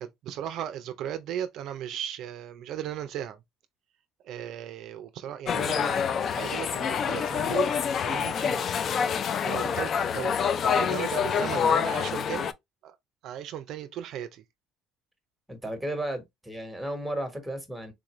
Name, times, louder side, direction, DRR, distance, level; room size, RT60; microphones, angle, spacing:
voice 1, 0.0-3.4 4.2-6.1 6.3-7.7 8.0-8.7 9.4-10.4 10.7-12.5 12.8-13.0 13.2-14.4, right 10 dB, 60° right, 0.4 m, -36 dB
sound 1, 5.5-12.5, left 7 dB, 40° left, 0.3 m, -27 dB
voice 2, 15.5-17.9, right 1 dB, ahead, 1.1 m, -34 dB
3.6 x 2.4 x 3.0 m
cardioid pair, 120°, 0 cm